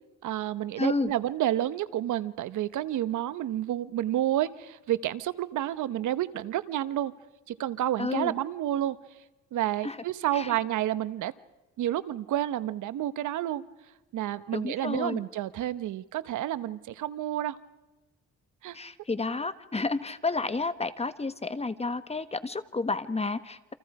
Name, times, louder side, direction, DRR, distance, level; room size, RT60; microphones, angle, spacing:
voice 1, 0.2-7.1 7.5-9.0 9.5-11.3 11.8-13.6 14.1-17.6 18.6-18.8, right 12 dB, 75° right, 15 dB, 1.1 m, -30 dB
voice 2, 0.8-1.1 8.0-8.3 9.8-10.0 10.3-10.6 14.5-15.2 18.7-23.7, left 3 dB, 20° left, 12 dB, 1.4 m, -31 dB
29.0 x 27.0 x 4.9 m, 1.0 s
cardioid pair, 90°, 30 cm